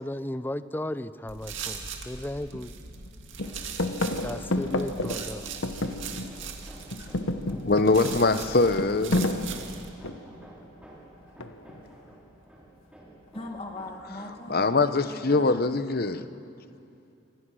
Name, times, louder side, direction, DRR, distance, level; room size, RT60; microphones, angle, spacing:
voice 1, 0.0-2.7 4.2-5.5, left 1 dB, 10° left, 14 dB, 0.5 m, -35 dB
sound 1, 1.3-9.9, right 6 dB, 70° right, 2.1 m, -40 dB
sound 2, 2.0-2.1 2.5-3.1 3.4-6.5 6.8-10.4 11.4-11.9, left 1 dB, 80° left, 1.2 m, -31 dB
Hammer, 3.3-15.4, right 1 dB, 5° right, 4.6 m, -52 dB
voice 2, 7.6-9.2 14.5-16.2, left 3 dB, 50° left, 11 dB, 0.9 m, -23 dB
voice 3, 13.3-15.6, left 1 dB, 30° left, 2 dB, 2.0 m, -40 dB
26.0 x 25.0 x 6.3 m, 2.6 s
head